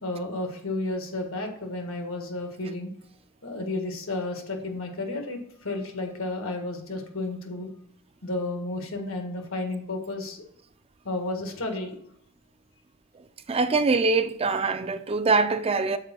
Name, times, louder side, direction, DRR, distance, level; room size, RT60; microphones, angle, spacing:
voice 1, 0.0-2.9 3.4-7.7 8.2-10.4 11.0-12.0, left 2 dB, 90° left, 1.6 m, -32 dB
voice 2, 13.5-16.0, right 4 dB, 30° right, 0.4 m, -23 dB
6.6 x 4.5 x 6.0 m
head